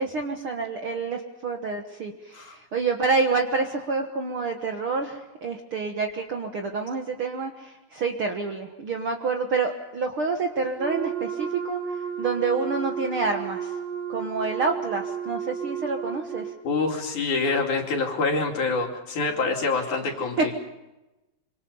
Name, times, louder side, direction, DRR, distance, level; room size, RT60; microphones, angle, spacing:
voice 1, 0.0-11.8 12.2-13.7 14.1-16.5 20.4-20.5, right 4 dB, 55° right, 3 dB, 1.6 m, -28 dB
Wind instrument woodwind instrument, 10.8-16.6, right 7 dB, 90° right, 5.3 m, -33 dB
voice 2, 16.6-20.6, left 3 dB, 60° left, 2 dB, 4.0 m, -26 dB
25.5 x 25.5 x 5.6 m, 1.0 s
omnidirectional pair, 4.1 m